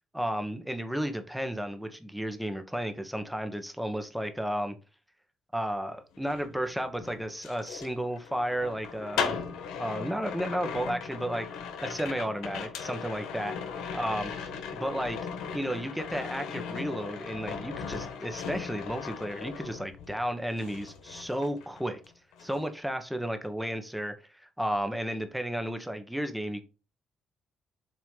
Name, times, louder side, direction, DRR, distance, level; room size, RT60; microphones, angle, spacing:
voice 1, 0.1-4.8 5.5-9.4 9.8-11.5 11.8-13.5 13.9-14.3 14.7-15.2 15.5-22.0 22.4-24.1 24.6-26.6, equal, ahead, 1.3 m, -33 dB
sound 1, 6.1-20.3 20.6-22.1 22.3-22.7, left 6 dB, 90° left, 1.3 m, -38 dB
7.9 x 3.1 x 5.6 m
cardioid pair, 90°, 0 cm